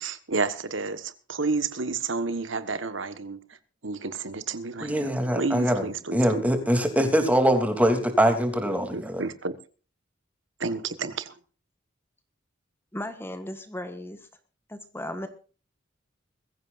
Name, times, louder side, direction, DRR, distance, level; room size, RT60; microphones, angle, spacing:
voice 1, 0.0-3.4 3.8-5.1 5.4-6.4 8.9-9.5 10.6-11.3, right 4 dB, 75° right, 1.4 m, -30 dB
voice 2, 4.8-9.2, equal, 10° right, 3.0 m, -23 dB
voice 3, 12.9-14.3 14.7-15.3, left 1 dB, 10° left, 1.5 m, -36 dB
22.0 x 15.0 x 2.6 m
head